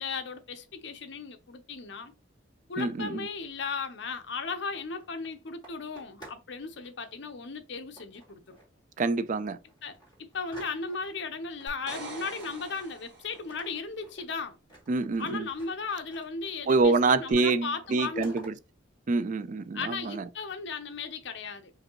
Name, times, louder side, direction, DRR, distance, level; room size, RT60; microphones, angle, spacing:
voice 1, 0.0-2.1 2.7-8.6 9.8-14.6 15.2-18.4 19.7-21.7, left 4 dB, 60° left, 0.7 m, -36 dB
voice 2, 2.8-3.3 9.0-9.6 14.9-15.5 16.7-18.5 19.1-20.3, right 3 dB, 40° right, 0.3 m, -26 dB
sound 1, 4.6-6.5 6.8-7.2 8.0-8.8 9.2-9.3 9.7-11.2 11.6-13.1 13.3-16.5 16.8-17.4 17.7-18.5, right 2 dB, 20° left, 2.3 m, -52 dB
sound 2, 11.7-13.6 17.3-17.4, right 3 dB, 60° right, 1.5 m, -44 dB
5.0 x 2.6 x 2.9 m
head